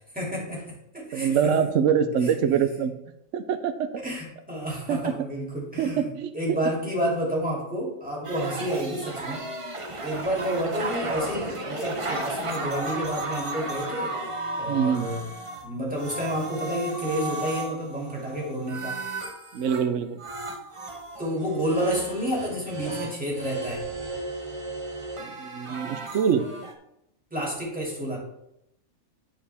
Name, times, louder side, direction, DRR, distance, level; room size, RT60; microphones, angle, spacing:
voice 1, 0.1-0.6 0.9-1.3 4.0-6.1 6.3-9.4 10.0-14.1 14.6-15.2 15.6-18.9 21.2-23.8 27.3-28.2, equal, 5° right, -5 dB, 2.6 m, -30 dB
voice 2, 1.1-2.9 3.3-3.9 4.9-5.2 5.8-6.6 14.7-15.1 19.5-20.2 25.2-26.5, right 7 dB, 65° right, 9 dB, 1.0 m, -24 dB
sound 1, 8.2-15.7 15.9-19.9 20.2-26.7, right 2 dB, 30° right, 0.7 m, -34 dB
10.5 x 4.8 x 3.5 m, 0.80 s
omnidirectional pair, 1.4 m